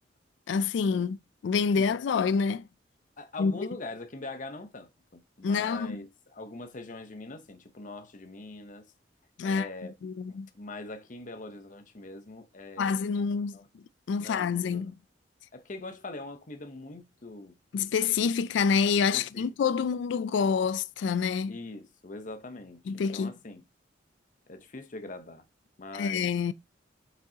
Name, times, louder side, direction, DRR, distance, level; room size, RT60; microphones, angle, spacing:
voice 1, 0.5-1.2 1.4-2.6 3.4-3.5 5.4-6.0 9.4-9.7 10.0-10.5 12.8-14.9 17.7-21.6 22.9-23.3 25.9-26.5, left 6 dB, 70° left, 0.3 m, -27 dB
voice 2, 3.2-8.9 9.4-9.9 10.3-13.6 14.2-14.9 15.5-17.5 19.1-19.5 19.8-19.9 21.5-23.6 24.5-25.4 25.8-26.3, left 2 dB, 45° left, 0.8 m, -42 dB
7.4 x 5.3 x 2.8 m
head